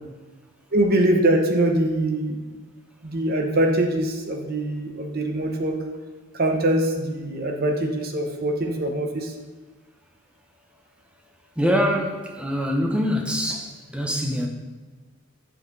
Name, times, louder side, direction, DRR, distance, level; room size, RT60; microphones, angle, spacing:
voice 1, 0.7-2.4 3.0-5.8 6.3-9.3, right 1 dB, 45° right, 3 dB, 0.9 m, -23 dB
voice 2, 11.6-14.5, equal, 5° right, 1 dB, 0.7 m, -24 dB
7.8 x 5.7 x 3.9 m, 1.3 s
head